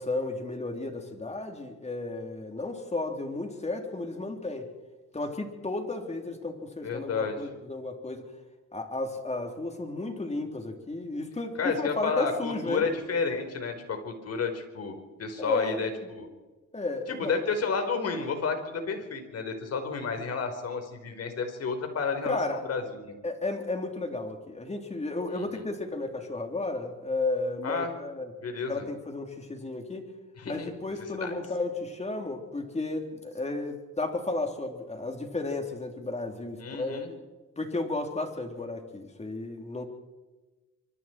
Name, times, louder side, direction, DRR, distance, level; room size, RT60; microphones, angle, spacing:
voice 1, 0.0-4.7 5.1-8.3 8.7-12.8 15.4-16.1 16.7-17.3 22.2-22.6 23.2-28.3 28.7-30.1 30.5-37.1 37.6-39.9, left 2 dB, 20° left, 4 dB, 4.0 m, -33 dB
voice 2, 6.8-7.4 11.6-16.3 17.1-23.2 25.3-25.5 27.6-27.9 28.4-28.8 30.4-30.7 31.2-31.3 36.6-37.1, left 5 dB, 55° left, 6 dB, 4.7 m, -31 dB
25.5 x 24.0 x 4.7 m, 1.2 s
cardioid pair, 90°, 30 cm